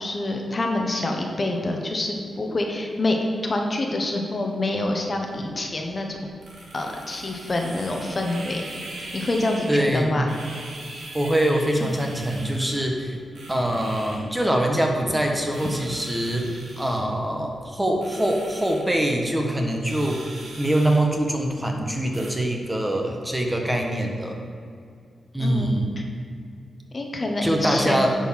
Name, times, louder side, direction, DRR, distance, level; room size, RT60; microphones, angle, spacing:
voice 1, 0.0-3.2 3.4-6.2 6.7-8.8 9.1-10.3 25.4-25.7 26.0-26.1 26.9-28.1, left 2 dB, 40° left, 2 dB, 1.2 m, -26 dB
sound 1, 5.2-22.3, right 2 dB, 75° right, 2.4 m, -42 dB
voice 2, 9.7-10.2 11.1-13.2 13.5-20.2 20.6-24.4 25.3-26.0 27.4-28.1, right 1 dB, 10° right, 1 dB, 1.2 m, -24 dB
10.5 x 4.6 x 5.7 m, 2.3 s
cardioid pair, 80°, 0 cm